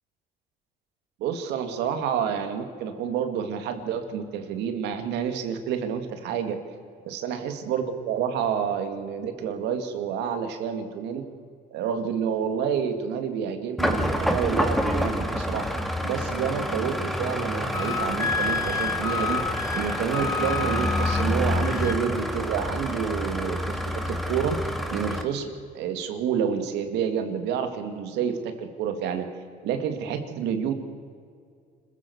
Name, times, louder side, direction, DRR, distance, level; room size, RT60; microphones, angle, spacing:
voice 1, 1.2-6.6 7.1-11.3 11.7-15.7 16.0-19.4 19.7-24.6 24.9-25.5 25.7-29.3 29.6-30.7, right 7 dB, 85° right, 7 dB, 2.3 m, -29 dB
sound 1, 13.8-25.2, equal, ahead, 2.0 m, -28 dB
Wind instrument woodwind instrument, 17.7-22.0, left 4 dB, 20° left, 0.5 m, -30 dB
26.5 x 15.0 x 7.1 m, 2.2 s
cardioid pair, 110°, 17 cm